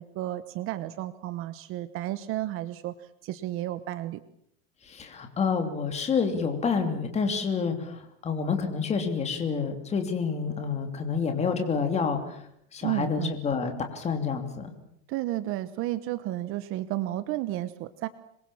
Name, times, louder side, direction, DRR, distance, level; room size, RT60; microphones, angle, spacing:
voice 1, 0.0-2.9 3.2-4.2 12.8-13.4 15.1-18.1, right 15 dB, 35° right, 13 dB, 1.0 m, -32 dB
voice 2, 4.9-12.4 12.7-14.7, left 5 dB, 15° left, 6 dB, 3.0 m, -28 dB
26.5 x 22.5 x 7.4 m, 0.73 s
supercardioid pair, 170°, 38 cm